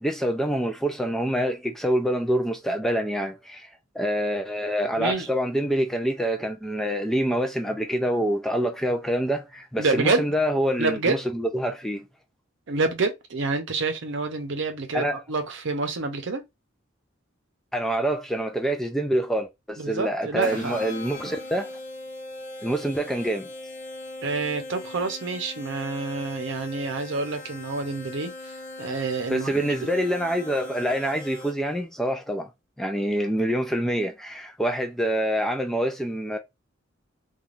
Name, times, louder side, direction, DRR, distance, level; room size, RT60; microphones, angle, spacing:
voice 1, 0.0-3.7 3.9-12.0 14.9-15.2 17.7-21.7 22.6-23.5 29.3-32.5 32.8-36.4, equal, ahead, 0.3 m, -26 dB
voice 2, 5.0-5.3 9.8-10.3 10.8-11.2 12.7-16.4 19.8-20.8 24.2-28.3 28.8-29.9, right 3 dB, 65° right, 0.7 m, -27 dB
sound 1, 20.4-31.8, left 2 dB, 40° left, 0.6 m, -40 dB
3.1 x 2.4 x 2.5 m
head